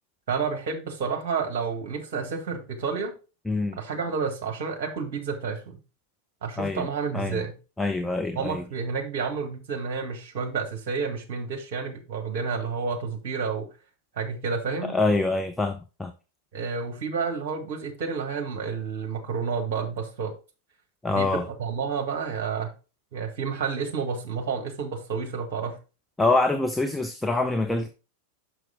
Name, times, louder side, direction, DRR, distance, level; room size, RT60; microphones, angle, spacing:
voice 1, 0.3-3.1 3.8-5.7 6.4-7.6 8.3-13.7 14.1-15.0 16.5-20.3 21.1-22.7 23.1-25.8, right 5 dB, 50° right, 1.6 m, -30 dB
voice 2, 3.5-3.8 6.6-6.9 7.1-7.4 7.8-8.6 14.8-16.1 21.0-21.4 26.2-27.9, left 2 dB, 5° left, 0.6 m, -25 dB
6.0 x 5.9 x 3.6 m
figure-of-eight pair, 90°, 0 cm